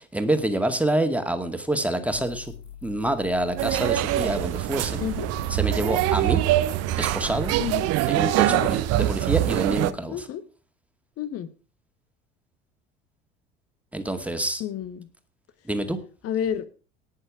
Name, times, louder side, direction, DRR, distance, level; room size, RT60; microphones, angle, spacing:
voice 1, 0.0-2.5 2.8-5.0 5.5-6.4 7.0-7.5 8.1-10.2 13.9-14.6 15.7-16.0, right 1 dB, 5° right, 2.2 m, -27 dB
sound 1, 2.0-7.6, left 5 dB, 80° left, 2.0 m, -42 dB
sound 2, 3.6-9.9, right 15 dB, 50° right, 1.0 m, -24 dB
voice 2, 5.0-5.3 7.6-7.9 8.4-8.7 10.1-10.4 11.2-11.5 14.6-15.1 16.2-16.7, left 9 dB, 45° left, 1.5 m, -30 dB
19.0 x 6.7 x 4.9 m
figure-of-eight pair, 65°, 32 cm